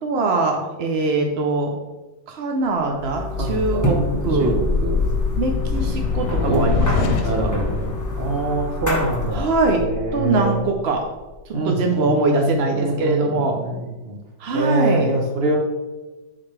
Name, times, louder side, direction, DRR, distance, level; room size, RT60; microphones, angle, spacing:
voice 1, 0.0-1.7 2.3-4.5 5.4-7.1 7.4-7.5 9.3-9.8 10.1-11.0 11.6-13.6 14.4-15.1, right 2 dB, 65° right, 2 dB, 0.6 m, -22 dB
sound 1, 3.0-9.5, left 1 dB, 15° left, 0.6 m, -26 dB
sound 2, 3.4-11.4, left 4 dB, 85° left, 1.4 m, -26 dB
voice 2, 3.4-3.9 4.3-5.0 6.5-6.7 7.2-7.9 8.2-9.5 9.8-10.6 11.5-12.1 12.4-14.1 14.5-15.6, right 2 dB, 40° right, 0 dB, 1.2 m, -24 dB
9.9 x 4.2 x 3.2 m, 1.1 s
omnidirectional pair, 1.9 m